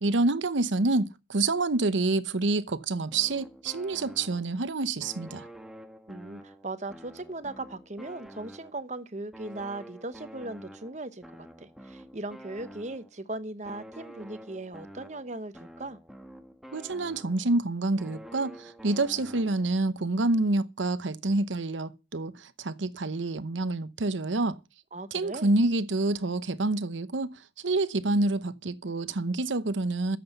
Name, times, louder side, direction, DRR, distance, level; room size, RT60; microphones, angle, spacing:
voice 1, 0.0-5.5 16.7-24.6 25.1-30.2, right 2 dB, 80° right, 0.9 m, -27 dB
sound 1, 3.1-4.7 5.0-9.0 9.3-13.2 13.6-17.6 18.0-19.8, right 1 dB, ahead, 1.1 m, -48 dB
voice 2, 6.1-16.0 24.9-25.5, right 2 dB, 35° right, 0.9 m, -38 dB
13.5 x 7.7 x 6.8 m
head